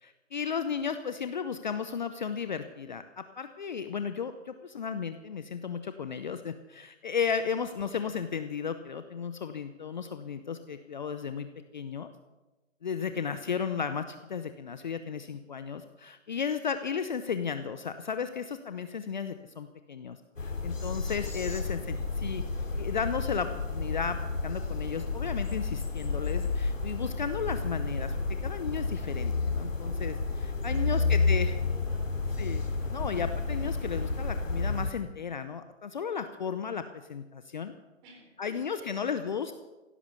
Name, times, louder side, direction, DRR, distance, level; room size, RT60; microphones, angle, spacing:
voice 1, 0.0-11.5 11.7-12.1 12.8-20.2 20.4-22.4 22.8-24.2 24.4-28.1 28.4-31.5 32.4-32.6 32.9-36.8 37.1-37.7 38.4-39.5, left 6 dB, 35° left, 9 dB, 0.8 m, -34 dB
voice 2, 13.0-13.3 16.7-16.8 21.1-21.7 30.6-32.3 38.0-39.4, right 2 dB, 20° right, 2 dB, 3.9 m, -54 dB
sound 1, 20.4-34.9, left 3 dB, 85° left, 3.2 m, -31 dB
16.5 x 12.0 x 7.1 m, 1.1 s
figure-of-eight pair, 150°, 38 cm